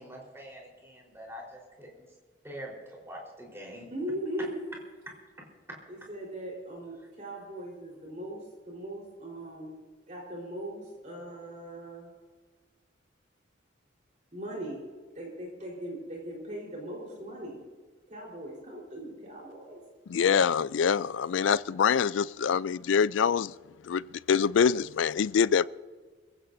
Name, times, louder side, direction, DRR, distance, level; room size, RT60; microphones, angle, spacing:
voice 1, 0.0-2.1 2.4-3.9 4.4-4.5 5.1-5.2, equal, 15° right, 4.2 m, -44 dB
voice 2, 3.9-4.6 5.9-9.7 10.1-12.1 14.3-14.8 15.1-17.6 18.1-19.8, right 1 dB, 40° right, 4.2 m, -39 dB
voice 3, 20.1-23.5 23.9-24.0 24.3-25.6, left 7 dB, 75° left, 0.4 m, -25 dB
25.0 x 15.5 x 2.7 m
head